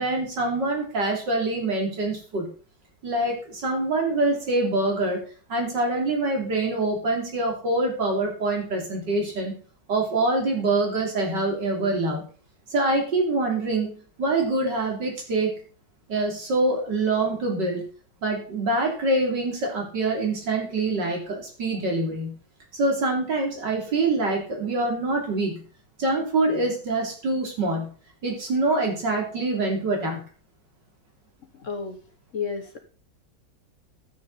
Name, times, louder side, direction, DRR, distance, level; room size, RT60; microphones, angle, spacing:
voice 1, 0.0-2.5 3.0-5.2 5.5-9.5 9.9-12.2 12.7-15.5 16.1-17.8 18.2-22.4 22.7-25.6 26.0-27.9 28.2-30.2, right 2 dB, 75° right, 0 dB, 3.7 m, -25 dB
voice 2, 31.5-32.0 32.3-32.8, left 5 dB, 50° left, 7 dB, 1.3 m, -31 dB
13.0 x 7.8 x 4.1 m, 0.40 s
omnidirectional pair, 1.9 m